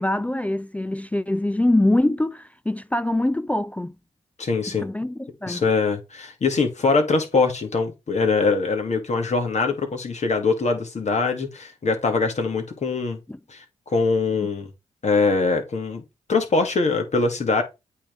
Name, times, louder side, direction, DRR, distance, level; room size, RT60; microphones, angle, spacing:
voice 1, 0.0-3.9 4.7-5.6 13.3-13.4, left 1 dB, 10° left, 0.4 m, -24 dB
voice 2, 4.4-4.8 5.5-13.2 13.5-14.7 15.0-16.0 16.3-17.6, left 4 dB, 55° left, 2.3 m, -23 dB
8.4 x 3.5 x 4.8 m
supercardioid pair, 40°, 14 cm